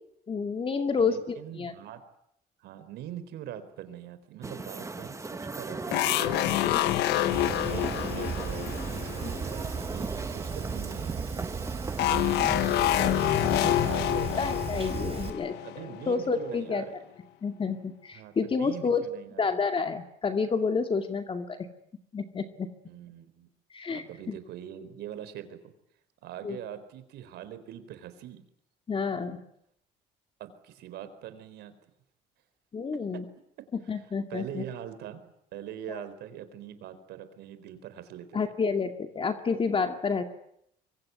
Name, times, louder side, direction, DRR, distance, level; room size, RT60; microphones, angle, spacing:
voice 1, 0.3-1.7 6.7-6.8 9.2-9.3 14.4-15.5 16.1-16.8 17.4-19.0 19.4-21.7 22.1-22.7 23.7-24.4 26.4-26.6 28.9-29.4 32.7-33.2 33.9-34.6 35.9-36.0 38.3-40.2, left 5 dB, 30° left, 6 dB, 2.3 m, -29 dB
voice 2, 1.0-2.0 2.6-11.5 11.8-12.3 12.5-14.4 15.2-15.3 15.6-16.9 18.1-19.6 22.8-23.5 23.9-25.7 26.2-28.4 30.4-31.7 32.9-33.2 34.3-35.2 35.5-38.4, right 10 dB, 80° right, 12 dB, 4.2 m, -43 dB
sound 1, 4.4-13.9, right 3 dB, 15° right, 1.5 m, -38 dB
sound 2, 5.9-9.8 12.0-16.4, left 14 dB, 85° left, 1.4 m, -27 dB
Fire, 7.3-15.3, right 6 dB, 35° right, 3.8 m, -36 dB
25.5 x 23.0 x 9.5 m, 0.74 s
cardioid pair, 110°, 17 cm